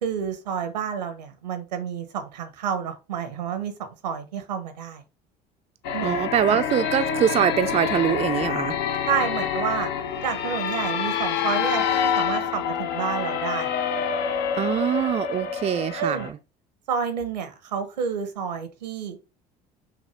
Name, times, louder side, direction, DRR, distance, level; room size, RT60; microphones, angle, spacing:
voice 1, 0.0-5.0 5.9-6.1 6.5-6.6 9.1-9.9 10.2-13.7 16.0-16.3 16.9-19.2, right 7 dB, 85° right, 0.8 m, -29 dB
sound 1, 5.8-16.3, left 7 dB, 60° left, 0.7 m, -27 dB
voice 2, 6.0-8.8 14.5-16.4, right 9 dB, 30° right, 0.4 m, -23 dB
5.7 x 2.2 x 3.2 m
hypercardioid pair, 65°, 21 cm